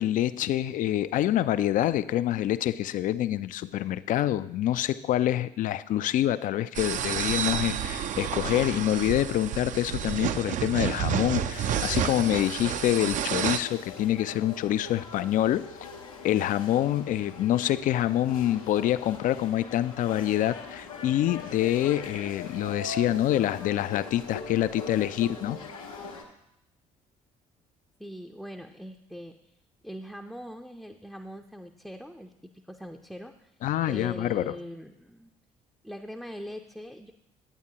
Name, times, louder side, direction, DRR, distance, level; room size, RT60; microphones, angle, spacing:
voice 1, 0.0-15.7 16.2-25.6 33.6-34.5, left 12 dB, 50° left, 15 dB, 0.4 m, -26 dB
sound 1, 6.7-13.6, right 9 dB, 45° right, 0.5 m, -30 dB
sound 2, 11.5-26.2, left 4 dB, 90° left, 0.9 m, -41 dB
voice 2, 28.0-29.4 29.8-32.3 32.7-33.5 33.8-35.3 35.8-37.1, equal, ahead, 3 dB, 0.5 m, -41 dB
9.8 x 8.7 x 2.8 m, 0.79 s
hypercardioid pair, 50°, 18 cm